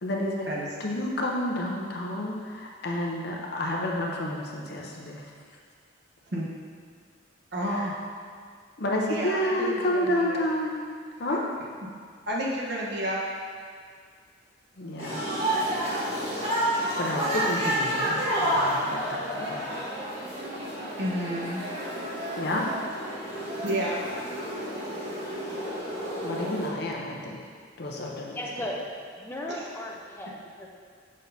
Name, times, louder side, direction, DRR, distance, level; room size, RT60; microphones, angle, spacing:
voice 1, 0.0-0.5 0.8-5.3 7.7-7.9 8.8-10.7 11.2-11.4 14.8-15.3 17.0-19.7 22.4-22.7 26.2-27.4 27.8-28.4, left 1 dB, 55° left, -1 dB, 0.7 m, -30 dB
voice 2, 7.5-7.9 9.1-10.4 12.3-13.2 21.0-21.6 23.6-24.0 29.5-29.6, right 1 dB, 60° right, -4 dB, 1.1 m, -30 dB
sound 1, 15.0-26.7, right 1 dB, 30° right, 1.5 m, -30 dB
voice 3, 28.3-28.8 29.2-30.7, left 1 dB, 10° left, -2 dB, 0.6 m, -36 dB
6.2 x 6.1 x 2.7 m, 2.1 s
head